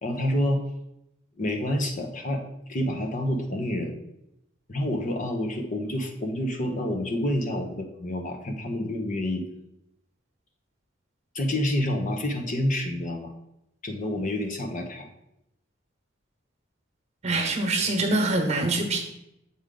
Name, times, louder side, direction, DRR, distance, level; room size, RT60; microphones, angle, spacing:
voice 1, 0.0-0.6 1.4-3.9 4.7-9.4 11.3-13.3 13.8-15.1, left 1 dB, 45° left, 3 dB, 0.9 m, -28 dB
voice 2, 17.2-19.0, right 2 dB, 35° right, 3 dB, 1.2 m, -24 dB
7.0 x 4.9 x 3.8 m, 0.81 s
head